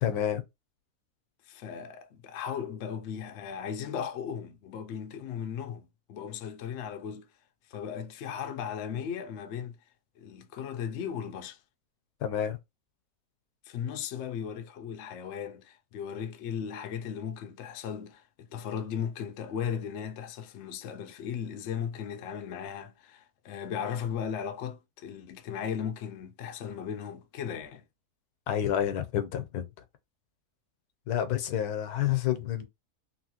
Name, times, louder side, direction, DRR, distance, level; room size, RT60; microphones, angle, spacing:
voice 1, 0.0-0.4 12.2-12.6 28.5-29.7 31.1-32.7, left 10 dB, 90° left, 1.2 m, -29 dB
voice 2, 1.5-7.3 7.7-9.8 10.2-11.6 13.7-27.9, left 8 dB, 70° left, 0.7 m, -36 dB
3.0 x 2.8 x 2.8 m
omnidirectional pair, 1.6 m